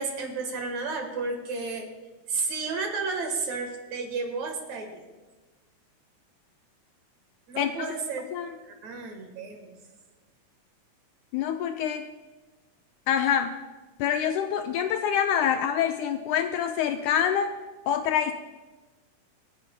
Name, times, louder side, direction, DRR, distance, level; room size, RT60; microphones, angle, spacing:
voice 1, 0.0-1.9 2.3-5.0 7.5-8.3 8.8-9.7, right 4 dB, 60° right, 4 dB, 2.6 m, -32 dB
voice 2, 7.6-7.9 8.3-8.6 11.3-12.1 13.1-13.5 14.0-17.5 17.9-18.3, left 9 dB, 80° left, 6 dB, 1.8 m, -26 dB
28.5 x 9.5 x 2.2 m, 1.2 s
omnidirectional pair, 3.8 m